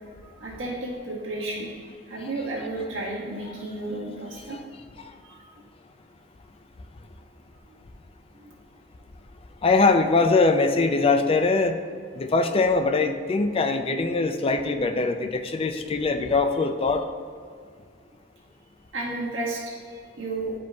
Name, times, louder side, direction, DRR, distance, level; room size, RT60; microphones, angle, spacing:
voice 1, 0.2-1.7 2.1-4.6 5.2-5.4 8.4-8.5 18.9-20.5, right 2 dB, 85° right, -5 dB, 1.5 m, -32 dB
voice 2, 9.6-11.7 12.2-17.0, left 3 dB, 30° left, 7 dB, 0.4 m, -22 dB
10.5 x 5.0 x 2.3 m, 2.1 s
head